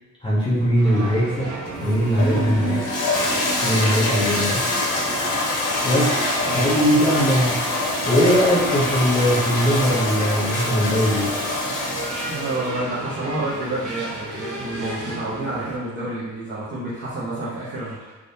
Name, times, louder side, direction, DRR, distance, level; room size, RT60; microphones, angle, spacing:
voice 1, 0.2-2.9 3.6-4.7 5.8-6.1 6.5-7.6 8.1-11.4, equal, 15° left, -9 dB, 0.6 m, -20 dB
sound 1, 0.7-15.8, right 2 dB, 85° right, 1.3 m, -35 dB
Toilet flush, 1.7-12.7, left 2 dB, 90° left, 0.8 m, -25 dB
voice 2, 5.9-6.5 12.3-18.1, right 2 dB, 45° right, -10 dB, 0.8 m, -29 dB
3.5 x 2.5 x 2.6 m, 1.2 s
wide cardioid pair, 160°, 30 cm